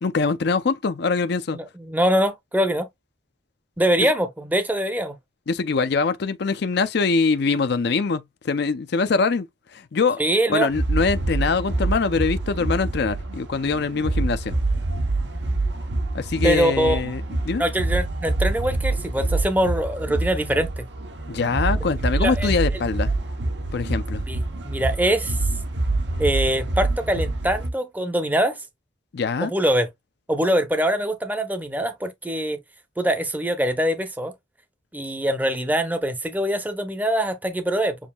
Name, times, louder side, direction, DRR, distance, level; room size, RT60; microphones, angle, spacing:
voice 1, 0.0-1.6 5.5-9.5 9.7-10.2 10.5-14.6 16.1-17.6 21.3-23.1 23.7-24.2 29.1-29.5, left 4 dB, 60° left, 0.5 m, -23 dB
voice 2, 1.5-2.9 3.8-5.2 10.2-10.7 16.4-17.0 17.6-20.8 22.2-22.6 24.3-25.4 26.2-28.6 29.4-29.9 30.3-32.6 33.0-34.3 34.9-38.0, right 1 dB, 10° right, 0.7 m, -23 dB
sound 1, 10.7-27.7, right 2 dB, 65° right, 0.9 m, -26 dB
7.1 x 2.6 x 2.3 m
head